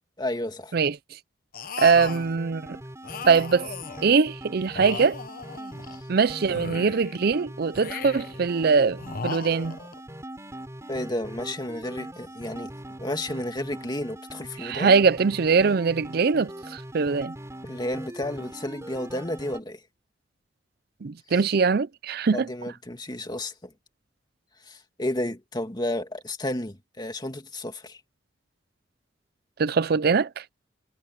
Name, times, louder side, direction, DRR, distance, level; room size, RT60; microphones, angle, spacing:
voice 1, 0.2-0.7 5.9-6.0 10.9-12.7 13.0-14.9 17.6-19.8 21.3-21.5 22.3-23.7 24.7-28.0, left 1 dB, 25° left, 2.4 m, -32 dB
sound 1, 1.5-2.3 3.0-4.1 4.7-6.0 6.4-7.2 7.7-8.4 9.0-10.0, left 5 dB, 50° left, 1.0 m, -37 dB
voice 2, 1.8-2.6 3.2-3.7 4.0-5.2 6.1-9.8 14.6-17.3 21.0-22.5 29.6-30.4, right 5 dB, 55° right, 0.5 m, -22 dB
sound 2, 1.9-19.6, right 1 dB, 15° right, 5.6 m, -41 dB
head